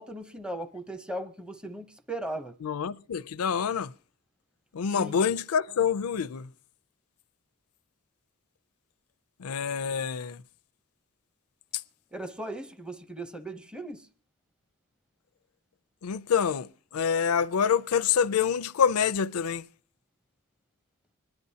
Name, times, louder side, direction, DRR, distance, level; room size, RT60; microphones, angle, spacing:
voice 1, 0.0-2.5 4.9-5.2 12.1-14.1, right 1 dB, 5° right, 0.7 m, -38 dB
voice 2, 2.6-3.9 4.7-6.5 9.4-10.4 11.7-11.8 16.0-19.6, left 7 dB, 85° left, 0.5 m, -26 dB
25.0 x 10.5 x 2.8 m
head